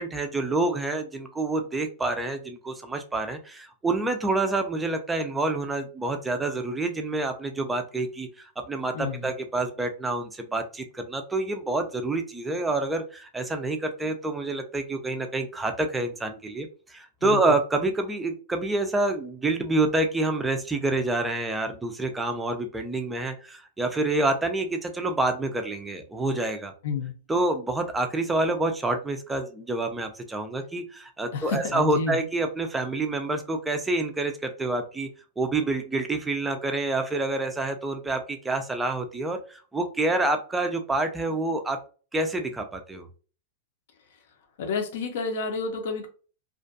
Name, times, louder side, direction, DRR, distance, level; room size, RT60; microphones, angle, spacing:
voice 1, 0.0-26.7 27.3-35.1 35.4-41.8 42.1-43.1, right 2 dB, 10° right, 0.3 m, -27 dB
voice 2, 8.9-9.3 17.2-17.6 26.8-27.1 31.3-32.3 44.6-46.1, left 4 dB, 65° left, 0.6 m, -30 dB
2.5 x 2.2 x 2.5 m
supercardioid pair, 155°, 0 cm